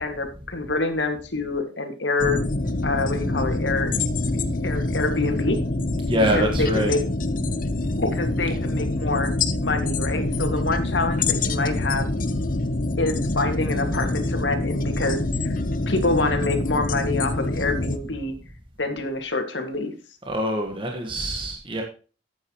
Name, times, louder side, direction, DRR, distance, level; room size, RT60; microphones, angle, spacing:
voice 1, 0.0-2.4 2.8-3.9 4.6-5.6 6.3-7.0 8.0-9.3 9.6-12.1 13.0-15.2 15.4-15.5 15.9-18.3 18.8-19.9, left 3 dB, 75° left, 6 dB, 2.1 m, -26 dB
sound 1, 2.2-18.0, left 2 dB, 45° left, 0.9 m, -25 dB
voice 2, 6.0-7.0 11.8-11.9 20.2-21.8, equal, 30° right, 2 dB, 1.6 m, -25 dB
12.5 x 8.6 x 3.1 m, 0.36 s
head